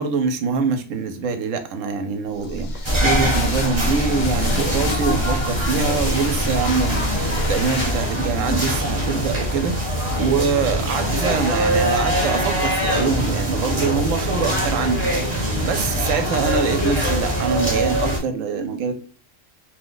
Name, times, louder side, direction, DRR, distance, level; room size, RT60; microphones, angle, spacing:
voice 1, 0.0-9.8 10.1-15.1 15.6-18.9, right 5 dB, 85° right, 8 dB, 1.0 m, -24 dB
sound 1, 2.3-8.3, left 1 dB, 70° left, 0.4 m, -28 dB
sound 2, 2.8-18.2, equal, 25° right, 0.9 m, -23 dB
2.9 x 2.1 x 3.8 m, 0.37 s
omnidirectional pair, 1.3 m